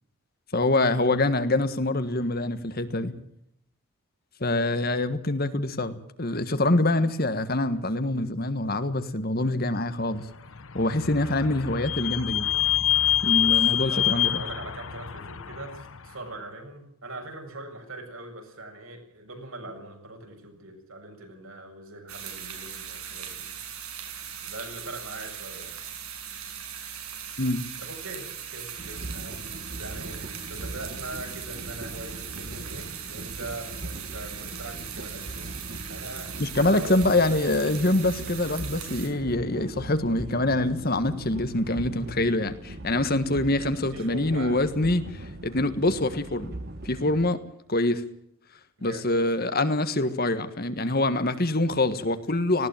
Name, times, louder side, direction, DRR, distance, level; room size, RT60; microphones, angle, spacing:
voice 1, 0.5-3.1 4.4-10.3 10.7-12.5 13.2-14.4 27.4-27.6 36.4-46.5 46.8-47.4 47.7-48.0 48.8-52.7, left 2 dB, 45° left, 11 dB, 1.5 m, -25 dB
Vehicle / Squeak, 10.4-16.0, left 12 dB, 65° left, 1.0 m, -26 dB
voice 2, 13.3-23.4 24.4-25.8 27.8-35.5 35.9-37.7 43.3-43.5 43.9-44.6 48.8-49.1, right 2 dB, 70° right, 3 dB, 7.2 m, -42 dB
sound 1, 22.1-39.1, right 8 dB, 85° right, 6.3 m, -39 dB
sound 2, 28.8-47.3, right 1 dB, 45° right, 1.4 m, -40 dB
19.0 x 17.5 x 9.0 m, 0.73 s
head